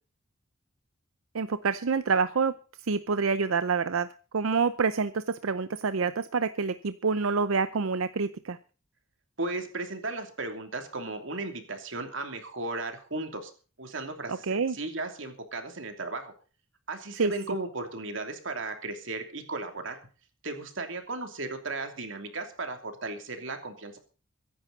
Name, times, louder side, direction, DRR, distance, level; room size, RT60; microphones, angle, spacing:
voice 1, 1.3-4.1 4.3-8.6 14.3-14.7 17.1-17.3, right 5 dB, 90° right, 13 dB, 0.6 m, -27 dB
voice 2, 9.4-13.5 13.8-16.3 16.9-20.0 20.4-24.0, right 2 dB, 65° right, 5 dB, 3.0 m, -35 dB
23.0 x 10.5 x 4.1 m, 0.37 s
head